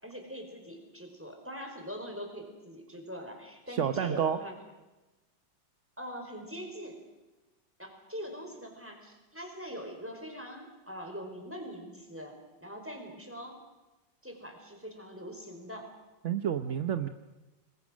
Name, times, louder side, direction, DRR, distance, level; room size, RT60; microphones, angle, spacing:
voice 1, 0.0-4.5 6.0-7.0 7.8-13.6 14.2-15.9, equal, 5° right, 3 dB, 4.7 m, -43 dB
voice 2, 3.7-4.4 16.2-17.1, right 9 dB, 50° right, 9 dB, 0.9 m, -29 dB
29.0 x 21.0 x 6.4 m, 1.1 s
omnidirectional pair, 2.1 m